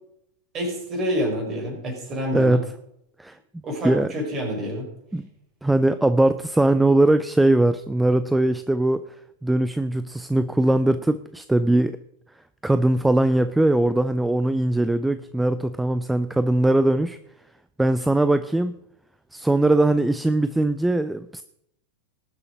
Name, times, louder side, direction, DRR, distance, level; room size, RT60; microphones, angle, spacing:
voice 1, 0.5-2.6 3.6-4.9, equal, 30° right, 1 dB, 4.9 m, -27 dB
voice 2, 2.3-2.6 3.2-3.4 3.8-4.1 5.1-5.2 5.6-9.0 9.4-12.0 12.6-17.2 17.8-18.8 19.3-21.4, right 1 dB, 5° right, 13 dB, 0.5 m, -20 dB
19.0 x 6.7 x 5.2 m, 0.77 s
figure-of-eight pair, 90°, 0 cm